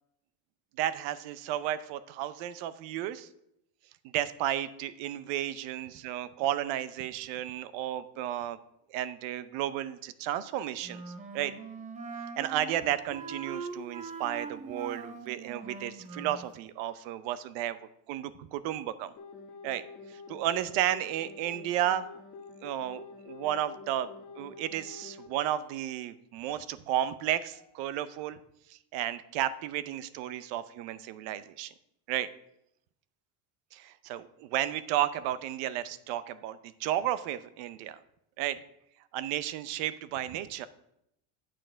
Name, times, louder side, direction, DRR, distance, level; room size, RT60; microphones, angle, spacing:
voice 1, 0.8-3.3 4.0-8.6 8.9-11.5 12.4-17.8 18.1-19.1 19.6-19.8 20.1-22.1 22.6-24.1 24.4-28.4 28.7-31.7 32.1-32.3 33.7-38.0 38.4-38.6 39.1-40.7, right 12 dB, 60° right, 15 dB, 0.7 m, -33 dB
Wind instrument woodwind instrument, 10.8-16.5, right 4 dB, 15° right, 0.4 m, -42 dB
sound 1, 19.1-25.7 27.5-27.7, left 4 dB, 30° left, 1.0 m, -48 dB
9.1 x 6.4 x 4.5 m, 0.78 s
cardioid pair, 155°, 50 cm